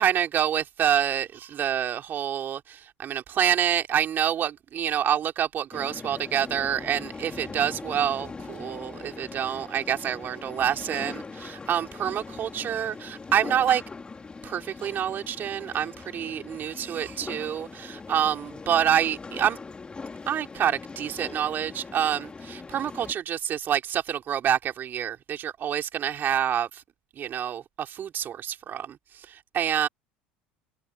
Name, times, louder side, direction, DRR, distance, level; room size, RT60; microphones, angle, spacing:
voice 1, 0.0-13.8 14.4-19.6 20.3-26.8 27.1-29.9, right 9 dB, 40° right, 3.3 m, -27 dB
sound 1, 5.7-23.1, left 4 dB, 20° left, 4.0 m, -41 dB
hypercardioid pair, 80°, 5 cm